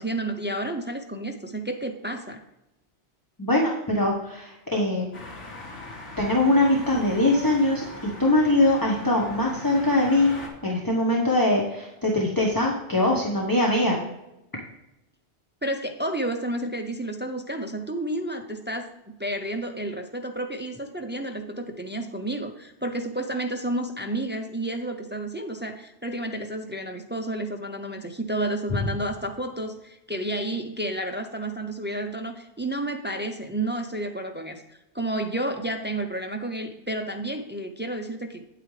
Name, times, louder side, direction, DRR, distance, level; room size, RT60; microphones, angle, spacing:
voice 1, 0.0-2.4 15.6-38.6, right 1 dB, 15° right, 5 dB, 0.3 m, -31 dB
voice 2, 3.4-5.1 6.2-10.3 10.6-14.0, left 1 dB, 20° left, -2 dB, 1.0 m, -22 dB
sound 1, 5.1-10.5, left 2 dB, 90° left, 2.8 m, -40 dB
8.8 x 8.5 x 3.2 m, 0.92 s
omnidirectional pair, 1.2 m